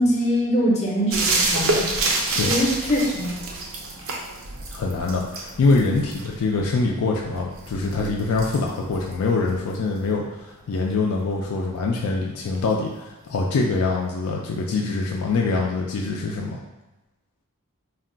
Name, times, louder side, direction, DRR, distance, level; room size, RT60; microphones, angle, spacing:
voice 1, 0.0-1.9 2.4-3.3, equal, 30° left, -3 dB, 0.6 m, -22 dB
sound 1, 1.1-10.5 12.5-12.6, right 2 dB, 65° right, 0.5 m, -28 dB
voice 2, 4.7-16.6, left 3 dB, 70° left, -1 dB, 0.4 m, -24 dB
2.3 x 2.2 x 3.7 m, 1.1 s
head